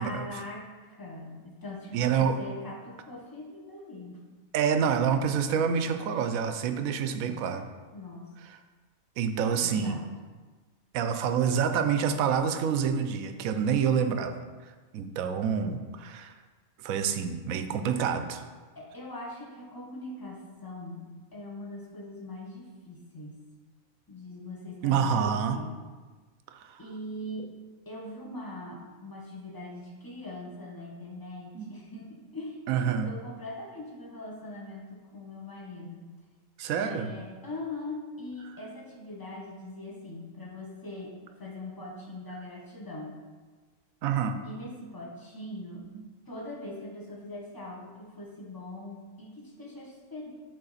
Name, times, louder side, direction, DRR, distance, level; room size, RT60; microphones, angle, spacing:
voice 1, 0.0-4.2 7.9-8.3 9.6-10.1 18.8-23.4 24.1-25.8 26.8-27.5 27.9-36.1 36.7-43.1 44.4-45.8 46.3-50.3, left 1 dB, 20° left, -2 dB, 0.9 m, -41 dB
voice 2, 1.9-2.3 4.5-7.7 9.2-10.0 10.9-14.3 14.9-16.3 16.8-18.4 24.8-25.6 26.5-26.8 31.5-31.7 32.7-33.1 36.6-37.1 44.0-44.4 45.9-46.0, right 7 dB, 85° right, 8 dB, 1.0 m, -27 dB
7.9 x 3.7 x 4.0 m, 1.4 s
omnidirectional pair, 1.4 m